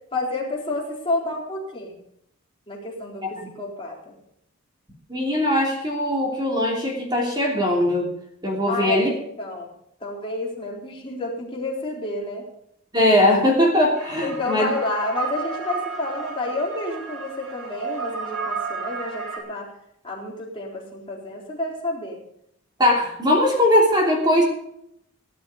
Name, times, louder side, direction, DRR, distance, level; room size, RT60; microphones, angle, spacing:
voice 1, 0.1-2.0 2.7-4.2 8.7-9.7 10.0-12.5 14.2-19.7 20.0-22.2, left 2 dB, 25° left, -3 dB, 4.0 m, -30 dB
voice 2, 5.1-8.1 8.4-9.1 12.9-14.7 22.8-24.4, left 1 dB, 20° right, -1 dB, 3.1 m, -20 dB
sound 1, 14.0-19.4, right 5 dB, 90° right, 5.3 m, -32 dB
17.0 x 11.0 x 5.0 m, 0.73 s
head